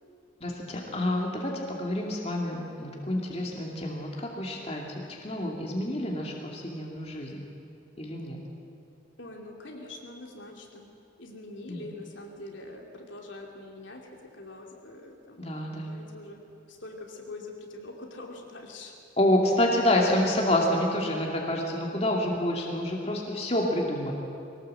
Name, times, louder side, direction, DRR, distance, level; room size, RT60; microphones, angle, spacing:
voice 1, 0.4-7.4 8.0-8.4 11.7-11.8 15.4-15.9 19.2-24.2, left 1 dB, 30° left, -1 dB, 2.4 m, -28 dB
voice 2, 2.5-3.0 9.2-10.9 11.2-15.5 15.9-19.0 23.5-23.8, left 2 dB, 70° left, 1 dB, 2.7 m, -44 dB
21.5 x 18.5 x 7.7 m, 2.5 s
head